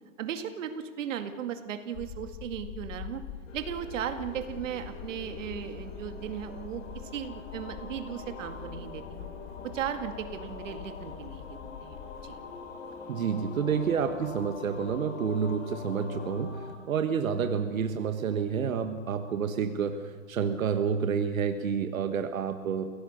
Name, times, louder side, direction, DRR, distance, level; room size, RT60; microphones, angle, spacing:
voice 1, 0.2-3.2 3.5-6.8 7.1-9.3 9.6-12.4, right 9 dB, 70° right, 7 dB, 2.2 m, -36 dB
sound 1, 1.9-12.4, left 8 dB, 45° left, 2.8 m, -44 dB
sound 2, 3.5-16.7, left 4 dB, 75° left, 7.9 m, -44 dB
voice 2, 13.1-22.9, right 6 dB, 90° right, 7 dB, 1.6 m, -29 dB
30.0 x 17.0 x 6.6 m, 1.5 s
hypercardioid pair, 140°, 40 cm